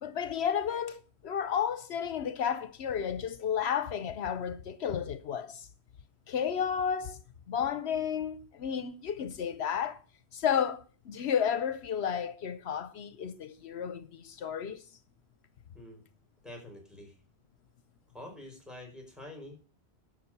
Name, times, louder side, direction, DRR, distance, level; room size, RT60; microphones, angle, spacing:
voice 1, 0.0-5.7 6.3-7.2 7.5-10.0 10.3-14.8, left 8 dB, 75° left, 1.0 m, -32 dB
voice 2, 16.4-17.2 18.1-19.6, left 1 dB, ahead, 5.1 m, -46 dB
11.5 x 6.5 x 6.6 m
omnidirectional pair, 1.1 m